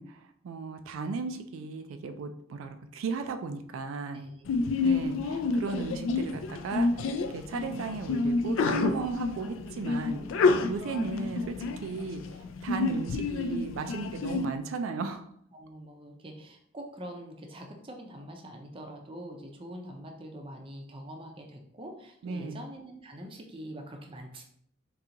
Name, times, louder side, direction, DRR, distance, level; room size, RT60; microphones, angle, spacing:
voice 1, 0.0-4.2 4.8-12.2 12.6-15.3 22.2-22.6, right 4 dB, 90° right, 7 dB, 0.3 m, -36 dB
Sneeze, 4.5-14.4, left 3 dB, 75° left, 0.3 m, -29 dB
voice 2, 15.5-24.4, equal, 25° right, 2 dB, 0.5 m, -44 dB
3.7 x 2.4 x 2.8 m, 0.67 s
head